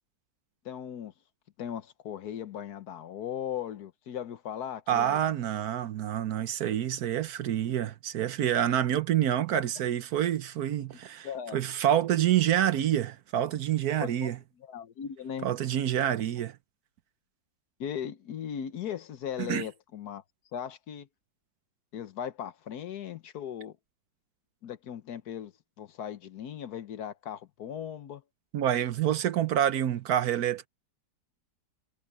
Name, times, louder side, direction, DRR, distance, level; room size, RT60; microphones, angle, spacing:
voice 1, 0.6-1.1 1.6-5.2 9.5-9.6 11.2-11.6 14.0-14.3 14.6-15.5 17.8-20.2 20.5-21.1 21.9-23.8 24.6-28.2, left 9 dB, 65° left, 1.4 m, -38 dB
voice 2, 4.9-14.4 15.4-16.6 19.4-19.6 28.5-30.7, right 11 dB, 65° right, 1.2 m, -27 dB
omnidirectional pair, 1.9 m